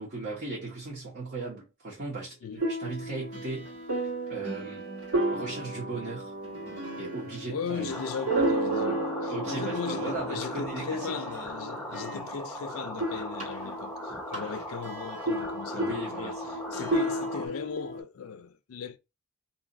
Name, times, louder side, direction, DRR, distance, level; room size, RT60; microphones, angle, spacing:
voice 1, 0.0-3.8 4.3-4.9 5.3-6.4 7.0-7.9 9.3-11.1 12.1-12.2 15.7-16.6, right 2 dB, 50° right, 1.1 m, -37 dB
sound 1, 2.6-12.6 12.9-18.0, right 1 dB, 75° right, 1.5 m, -33 dB
voice 2, 7.5-16.4 16.7-19.0, left 6 dB, 85° left, 0.4 m, -37 dB
sound 2, 7.9-17.5, equal, 5° left, 0.6 m, -39 dB
2.7 x 2.5 x 3.9 m
head